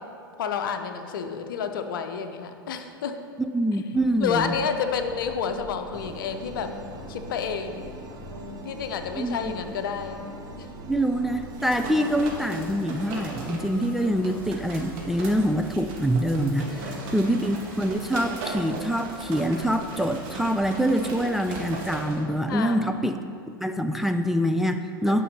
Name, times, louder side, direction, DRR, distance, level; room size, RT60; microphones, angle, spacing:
voice 1, 0.4-3.2 4.2-6.7 7.1-7.9 8.6-10.2 10.6-10.7 16.6-17.3 22.5-22.9 25.1-25.2, left 6 dB, 65° left, 7 dB, 0.8 m, -30 dB
voice 2, 3.5-4.5 9.2-9.4 10.9-23.2 23.6-25.2, equal, ahead, 7 dB, 0.3 m, -25 dB
sound 1, 3.9-16.3, equal, 80° right, 1.6 m, -43 dB
sound 2, 5.9-13.2, right 2 dB, 30° right, 0.9 m, -45 dB
sound 3, 11.4-22.2, right 3 dB, 45° right, 1.8 m, -38 dB
9.2 x 5.4 x 5.6 m, 2.4 s
figure-of-eight pair, 95°, 12 cm